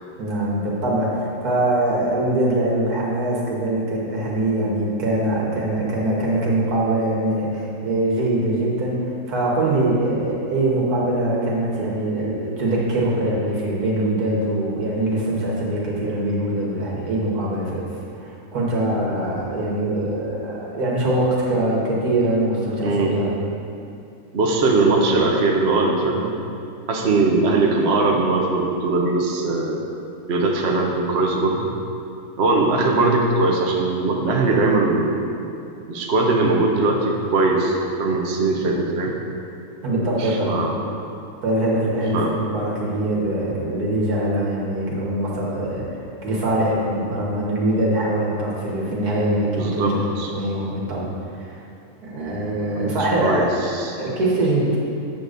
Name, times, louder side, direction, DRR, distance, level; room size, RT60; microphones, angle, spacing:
voice 1, 0.2-18.0 18.2-23.3 39.8-40.7 41.4-51.1 51.4-51.6 52.0-53.5 54.0-54.8, right 1 dB, 80° right, -4 dB, 2.0 m, -23 dB
voice 2, 22.8-23.2 24.3-26.3 26.9-29.8 30.3-31.7 32.4-35.2 35.9-39.1 40.2-40.7 42.1-42.3 49.6-50.3 52.7-52.9 53.2-53.4 53.7-53.9, right 3 dB, 50° right, 0 dB, 0.9 m, -20 dB
8.3 x 3.9 x 6.6 m, 2.6 s
omnidirectional pair, 1.6 m